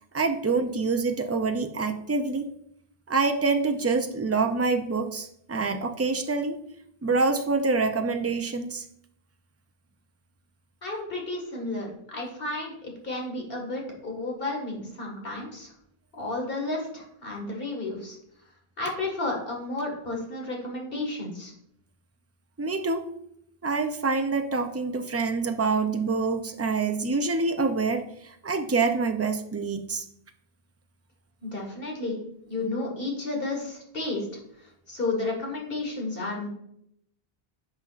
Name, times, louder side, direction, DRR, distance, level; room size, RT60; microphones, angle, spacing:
voice 1, 0.1-2.5 3.1-6.6 7.0-8.9 22.6-23.0 23.6-30.0, right 4 dB, 25° right, 6 dB, 0.4 m, -26 dB
voice 2, 10.8-15.7 16.1-18.2 18.8-21.5 31.4-32.2 32.5-34.3 34.6-36.5, left 2 dB, 65° left, 0 dB, 2.0 m, -32 dB
10.5 x 5.5 x 2.5 m, 0.73 s
omnidirectional pair, 1.0 m